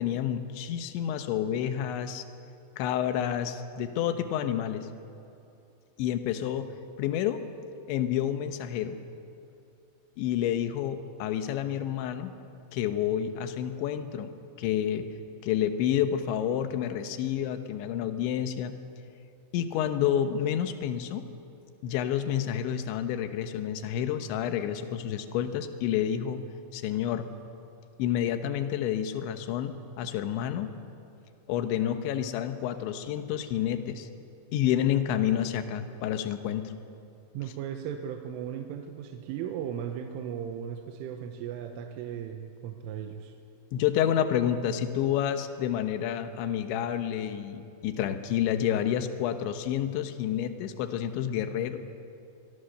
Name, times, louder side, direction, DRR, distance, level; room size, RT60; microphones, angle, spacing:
voice 1, 0.0-2.2 2.8-4.9 6.0-6.7 7.0-7.4 7.9-9.0 10.2-12.3 12.7-15.1 15.4-18.7 19.5-21.3 21.8-26.4 26.7-27.3 28.0-30.7 31.5-34.1 34.5-36.7 43.7-51.8, left 10 dB, 75° left, 8 dB, 3.3 m, -29 dB
voice 2, 37.3-43.3, right 9 dB, 90° right, 5 dB, 3.5 m, -36 dB
25.5 x 22.0 x 6.7 m, 2.6 s
omnidirectional pair, 5.7 m